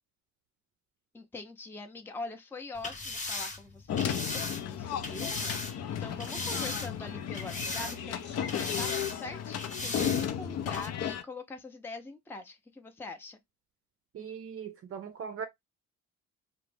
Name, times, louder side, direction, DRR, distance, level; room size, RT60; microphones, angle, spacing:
voice 1, 1.1-5.3 5.7-13.4, left 3 dB, 5° left, 0.5 m, -44 dB
sound 1, 2.7-5.7 6.2-7.1 7.3-8.2 8.5-9.2 9.6-10.3 10.7-10.9, left 2 dB, 25° left, 0.8 m, -37 dB
sound 2, 3.9-11.2, left 9 dB, 55° left, 0.5 m, -34 dB
sound 3, 5.4-10.7, left 6 dB, 85° left, 0.8 m, -49 dB
voice 2, 14.1-15.5, right 7 dB, 50° right, 0.5 m, -39 dB
2.4 x 2.1 x 3.2 m
cardioid pair, 90°, 30 cm